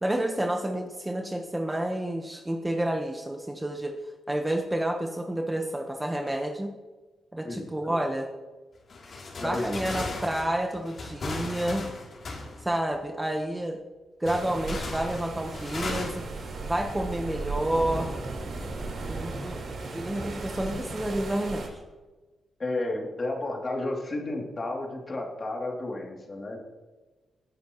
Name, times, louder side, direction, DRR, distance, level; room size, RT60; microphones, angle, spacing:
voice 1, 0.0-4.0 4.3-6.7 7.3-8.3 9.4-11.8 12.6-13.8 14.2-16.2 16.7-18.2 19.1-19.6 19.9-21.7, right 1 dB, 10° right, 3 dB, 1.1 m, -29 dB
voice 2, 7.4-7.9 9.1-10.1 22.6-26.6, left 2 dB, 35° left, 0 dB, 2.8 m, -33 dB
sound 1, 8.9-13.0 14.2-17.4 17.7-17.9 18.8-19.2, left 2 dB, 50° left, 3.2 m, -38 dB
sound 2, 14.2-21.7, right 3 dB, 60° right, 4.1 m, -36 dB
19.0 x 10.5 x 3.1 m, 1.2 s
cardioid pair, 115°, 0 cm